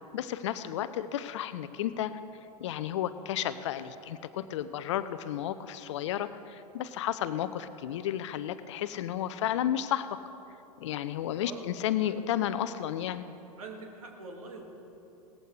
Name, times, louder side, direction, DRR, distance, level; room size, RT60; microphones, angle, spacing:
voice 1, 0.1-2.2 2.6-10.2 10.8-13.3, left 11 dB, 50° left, 13 dB, 0.5 m, -32 dB
voice 2, 13.6-14.7, right 3 dB, 65° right, 2 dB, 2.0 m, -44 dB
18.0 x 14.5 x 3.2 m, 2.9 s
figure-of-eight pair, 95°, 19 cm